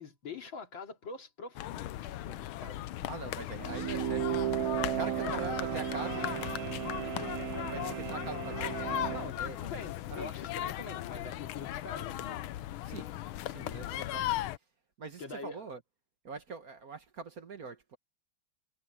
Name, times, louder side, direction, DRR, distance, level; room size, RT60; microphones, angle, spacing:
voice 1, 0.0-1.9 2.3-2.9 5.2-5.5 9.1-12.4 15.2-15.6, left 4 dB, 70° left, 3.5 m, -44 dB
sound 1, 1.6-14.6, left 14 dB, 90° left, 1.6 m, -37 dB
voice 2, 3.1-4.4 5.0-6.6 7.6-9.1 9.4-9.7 10.1-10.3 12.8-13.1 13.5-14.5 15.0-15.8 16.2-18.0, right 4 dB, 50° right, 1.7 m, -43 dB
sound 2, 3.6-9.3, right 12 dB, 80° right, 0.8 m, -35 dB
omnidirectional pair, 2.2 m